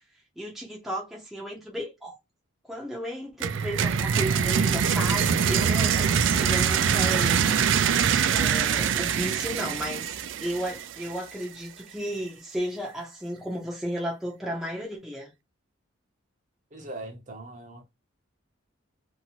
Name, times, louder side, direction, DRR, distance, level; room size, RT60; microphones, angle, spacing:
voice 1, 0.4-2.2 2.6-7.5 8.3-15.3, equal, ahead, 0.6 m, -34 dB
sound 1, 3.4-11.2, right 7 dB, 60° right, 0.3 m, -24 dB
voice 2, 16.7-17.9, right 2 dB, 35° right, 0.7 m, -40 dB
2.7 x 2.5 x 2.9 m
head